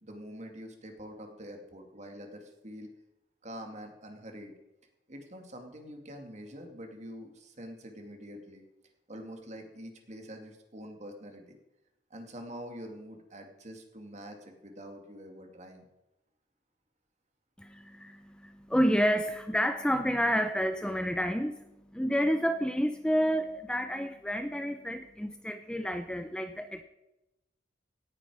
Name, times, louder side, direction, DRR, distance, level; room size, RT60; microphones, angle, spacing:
voice 1, 0.0-2.9 3.4-4.5 5.1-8.6 9.1-11.6 12.1-15.8, equal, 40° right, 4 dB, 2.3 m, -45 dB
voice 2, 17.6-26.8, equal, 5° left, 8 dB, 0.6 m, -29 dB
17.5 x 9.8 x 4.9 m, 0.93 s
head